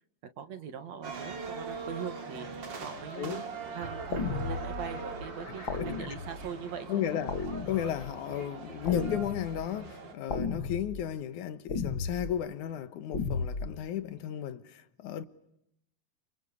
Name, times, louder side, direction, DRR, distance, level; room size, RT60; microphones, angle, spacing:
voice 1, 0.4-2.5 2.8-3.4 3.7-7.3, right 7 dB, 65° right, 3.1 m, -41 dB
sound 1, 1.0-10.1, right 4 dB, 40° right, 3.0 m, -42 dB
sound 2, 3.8-8.7, right 3 dB, 85° right, 6.3 m, -47 dB
sound 3, 4.1-4.9 5.7-6.5 7.3-8.1 8.9-9.7 10.3-11.0 11.7-12.3 13.1-13.7, left 4 dB, 45° left, 2.6 m, -34 dB
voice 2, 5.6-6.1 6.9-7.4 7.7-15.2, left 10 dB, 85° left, 2.7 m, -34 dB
29.0 x 26.5 x 6.9 m
omnidirectional pair, 3.4 m